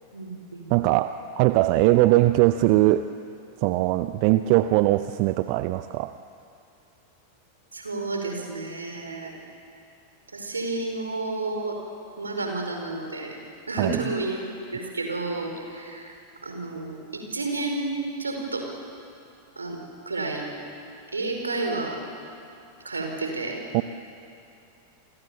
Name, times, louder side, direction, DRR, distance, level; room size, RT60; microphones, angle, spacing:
voice 1, 0.1-0.7 7.7-9.3 10.3-11.8 12.2-13.4 13.7-14.4 14.7-16.1 16.4-18.6 19.5-19.8 20.0-20.5 21.1-22.0 22.8-23.6, right 2 dB, 75° right, 3 dB, 4.9 m, -31 dB
voice 2, 0.7-3.0 3.6-6.1 13.8-14.0 23.7-23.8, right 17 dB, 45° right, 12 dB, 0.7 m, -21 dB
30.0 x 24.0 x 7.2 m, 2.6 s
figure-of-eight pair, 90°, 0 cm